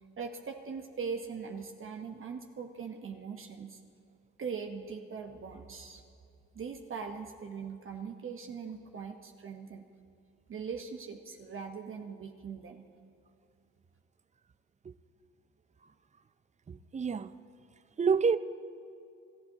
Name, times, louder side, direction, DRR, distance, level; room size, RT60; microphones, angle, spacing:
voice 1, 0.2-3.8 4.4-6.0 6.5-9.8 10.5-12.9, right 5 dB, 40° right, 1.1 m, -41 dB
voice 2, 16.7-17.3 18.0-18.4, right 5 dB, 25° right, 0.5 m, -28 dB
28.0 x 12.0 x 2.9 m
supercardioid pair, 70°, 31 cm